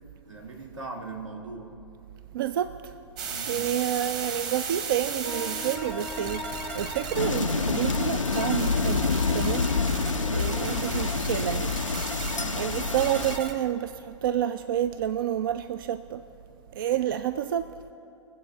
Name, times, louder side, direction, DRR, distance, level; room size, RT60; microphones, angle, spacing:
voice 1, 0.3-1.8 3.3-3.8 10.3-10.8 12.3-12.7, right 3 dB, 75° right, 2.2 m, -41 dB
voice 2, 2.3-2.9 3.5-9.8 10.2-11.7 12.6-16.2 16.8-17.7, right 11 dB, 45° right, 0.4 m, -29 dB
sound 1, 3.2-13.5, right 5 dB, 25° right, 1.1 m, -35 dB
Wind instrument woodwind instrument, 5.2-10.7, left 4 dB, 10° left, 0.6 m, -41 dB
sound 2, 7.1-13.4, left 4 dB, 85° left, 0.4 m, -27 dB
22.0 x 7.9 x 3.8 m
figure-of-eight pair, 110°, 16 cm